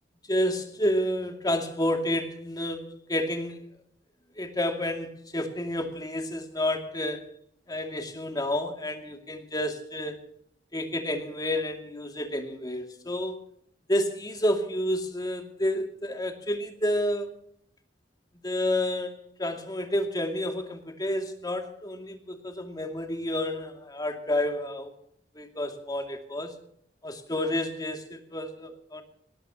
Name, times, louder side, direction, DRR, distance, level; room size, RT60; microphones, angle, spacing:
voice 1, 0.3-3.6 4.4-7.3 7.7-10.2 10.7-13.4 13.9-17.3 18.4-24.9 25.3-26.5 27.0-29.0, left 1 dB, 20° left, 4 dB, 2.5 m, -30 dB
21.5 x 18.5 x 3.0 m, 0.66 s
head